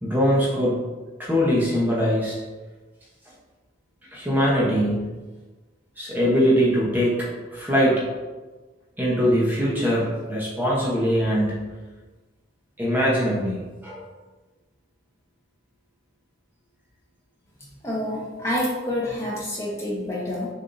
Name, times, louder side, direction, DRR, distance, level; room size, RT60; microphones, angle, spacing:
voice 1, 0.0-0.8 1.2-2.4 4.1-5.0 6.0-8.0 9.0-11.6 12.8-14.0, equal, 10° right, -6 dB, 0.9 m, -22 dB
voice 2, 17.8-20.5, left 1 dB, 15° left, -5 dB, 0.9 m, -28 dB
6.6 x 2.7 x 2.6 m, 1.3 s
head